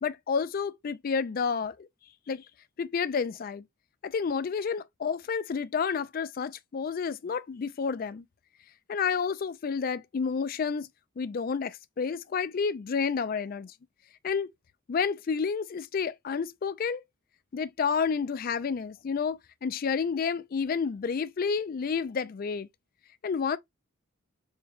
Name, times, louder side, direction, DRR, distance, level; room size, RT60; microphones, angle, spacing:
voice 1, 0.0-1.9 2.3-2.4 2.8-3.6 4.0-8.2 8.9-10.9 11.2-13.7 14.2-14.5 14.9-17.0 17.5-22.7 23.2-23.6, left 6 dB, 45° left, 0.3 m, -30 dB
4.5 x 2.2 x 3.4 m
head